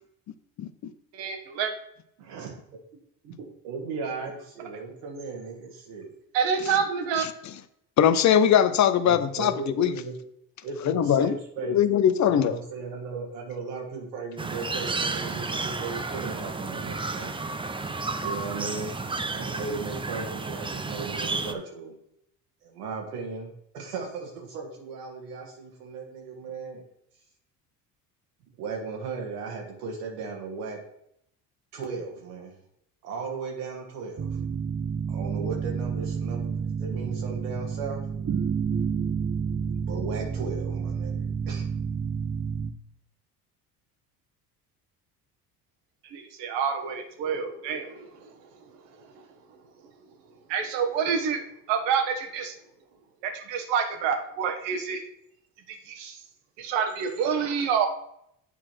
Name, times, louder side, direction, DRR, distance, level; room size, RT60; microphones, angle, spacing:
voice 1, 0.6-0.9 8.0-9.9 10.8-11.4 11.7-12.6, left 9 dB, 40° left, 12 dB, 0.6 m, -21 dB
voice 2, 1.1-1.7 6.3-7.2 46.0-49.3 49.5-49.6 50.5-52.5 53.2-55.0 55.7-56.2 56.6-57.9, right 7 dB, 65° right, 5 dB, 1.4 m, -28 dB
voice 3, 2.2-2.5 3.2-6.1 9.0-10.1 10.6-11.8 12.2-17.4 18.2-21.9 22.6-26.8 28.6-30.8 31.7-32.6 33.0-34.4 35.1-38.0 39.8-41.6, right 4 dB, 80° right, 1 dB, 1.8 m, -36 dB
sound 1, 14.4-21.5, right 3 dB, 10° right, 0.6 m, -32 dB
sound 2, 34.2-42.7, right 6 dB, 30° right, 1.0 m, -30 dB
8.2 x 4.4 x 4.4 m, 0.74 s
hypercardioid pair, 60°, 46 cm